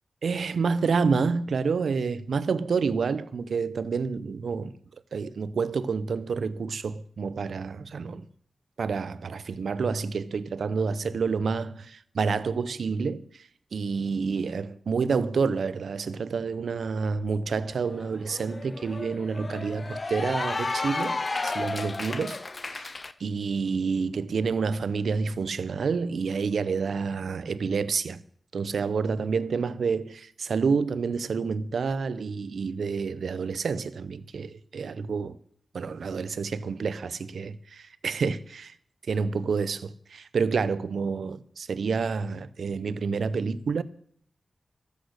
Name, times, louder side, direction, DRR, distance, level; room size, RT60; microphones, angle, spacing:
voice 1, 0.2-4.7 5.1-8.3 8.8-21.2 21.4-28.2 28.5-35.4 35.7-38.7 39.1-43.8, right 5 dB, 85° right, 0.6 m, -28 dB
Cheering / Applause, 17.3-17.4 17.7-23.1, left 3 dB, 45° left, 0.8 m, -33 dB
13.0 x 8.4 x 6.4 m
cardioid pair, 50°, 0 cm